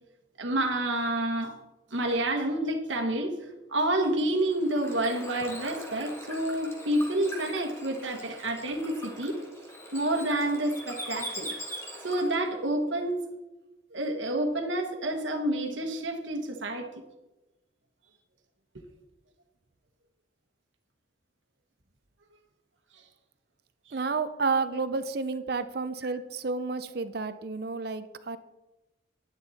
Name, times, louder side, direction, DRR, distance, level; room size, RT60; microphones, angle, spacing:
voice 1, 0.4-1.5 1.9-3.4 3.7-9.4 9.9-11.5 12.0-13.3 13.9-17.0 22.9-23.0 23.9-24.0 26.0-26.1, right 1 dB, 75° right, 3 dB, 1.3 m, -29 dB
Bird / Water, 4.0-12.5, equal, 15° left, 1.7 m, -42 dB
voice 2, 23.9-28.4, right 4 dB, 55° right, 12 dB, 0.6 m, -31 dB
10.0 x 9.9 x 4.2 m, 1.1 s
head